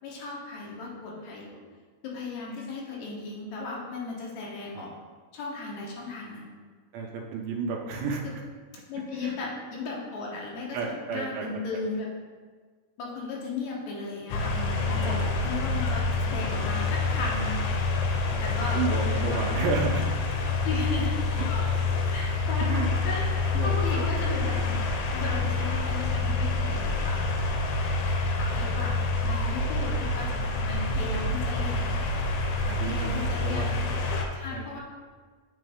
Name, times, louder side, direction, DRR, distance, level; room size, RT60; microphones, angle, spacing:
voice 1, 0.0-1.6 2.0-4.9 5.3-6.5 8.9-12.1 13.0-17.7 18.4-19.4 20.6-21.2 22.1-27.3 28.4-31.8 32.9-33.7 34.3-34.8, left 3 dB, 70° left, -3 dB, 1.9 m, -36 dB
voice 2, 6.9-8.2 9.2-9.4 10.7-11.5 15.0-15.3 18.3-20.1 21.4-21.5 22.7-22.9 23.5-24.1 32.1-32.3 32.7-33.6 34.5-34.8, right 5 dB, 85° right, 0 dB, 2.4 m, -32 dB
sound 1, 14.3-34.3, left 3 dB, 85° left, 2.4 m, -27 dB
Brass instrument, 22.9-29.1, equal, 65° right, 2.0 m, -51 dB
7.6 x 4.1 x 3.5 m, 1.5 s
omnidirectional pair, 4.2 m